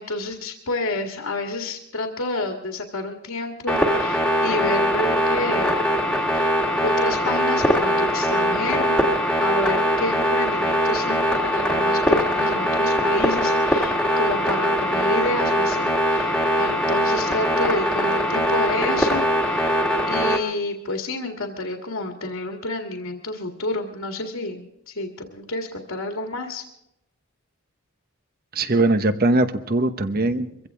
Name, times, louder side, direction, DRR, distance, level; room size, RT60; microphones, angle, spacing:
voice 1, 0.0-6.5 6.8-8.9 9.4-19.7 20.1-26.6, left 2 dB, 80° left, 3 dB, 1.9 m, -29 dB
sound 1, 3.7-20.4, equal, 5° left, 1.7 m, -21 dB
voice 2, 28.5-30.7, right 2 dB, 45° right, 10 dB, 1.1 m, -21 dB
23.5 x 15.5 x 3.6 m, 0.83 s
head